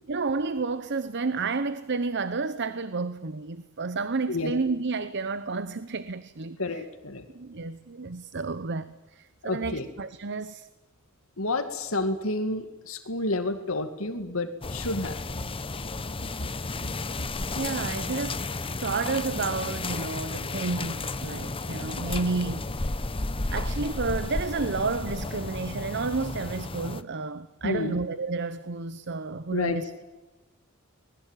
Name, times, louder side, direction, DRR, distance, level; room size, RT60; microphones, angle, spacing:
voice 1, 0.1-6.8 7.3-10.7 17.5-22.7 23.5-30.1, right 4 dB, 55° right, 0.9 m, -31 dB
voice 2, 6.6-7.3 9.4-9.9 11.4-15.2 27.6-28.0 29.5-29.8, left 2 dB, 70° left, 2.2 m, -29 dB
sound 1, 14.6-27.0, left 3 dB, 25° left, 0.9 m, -33 dB
25.0 x 20.5 x 9.2 m
head